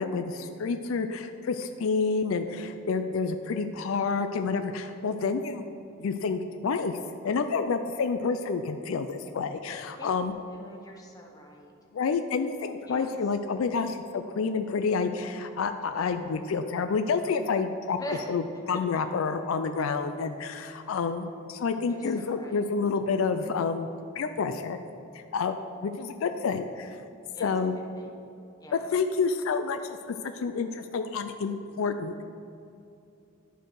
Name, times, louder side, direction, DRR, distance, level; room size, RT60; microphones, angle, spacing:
voice 1, 0.0-5.6 6.0-7.0 7.2-10.3 11.9-18.0 18.3-23.9 24.2-24.8 25.3-25.6 25.8-27.0 27.4-27.8 28.7-32.2, left 5 dB, 80° left, 8 dB, 0.4 m, -29 dB
voice 2, 10.5-11.7 12.9-13.2 18.0-18.3 18.7-18.8 21.9-22.6 27.3-27.6 28.0-28.1 28.6-28.9, equal, 20° left, 0 dB, 0.9 m, -42 dB
11.0 x 4.6 x 4.6 m, 2.7 s
head